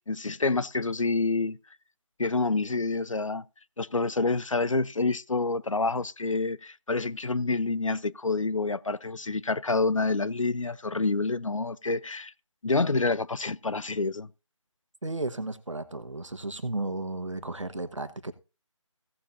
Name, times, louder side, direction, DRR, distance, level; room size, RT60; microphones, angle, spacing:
voice 1, 0.1-1.6 2.2-3.4 3.8-12.3 12.6-14.3, left 3 dB, 75° left, 0.6 m, -27 dB
voice 2, 15.0-18.3, right 2 dB, 70° right, 1.3 m, -34 dB
16.5 x 7.3 x 2.6 m
figure-of-eight pair, 160°, 17 cm